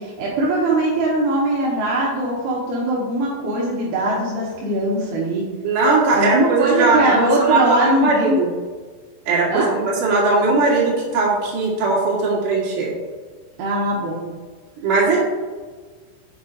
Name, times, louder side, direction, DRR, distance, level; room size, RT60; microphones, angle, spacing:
voice 1, 0.0-5.4 6.1-8.4 9.5-9.7 13.6-14.2, right 1 dB, 75° right, -5 dB, 2.3 m, -21 dB
voice 2, 5.6-8.5 9.3-12.9 14.8-15.2, right 3 dB, 55° right, -5 dB, 2.7 m, -19 dB
7.4 x 6.0 x 3.9 m, 1.5 s
omnidirectional pair, 6.0 m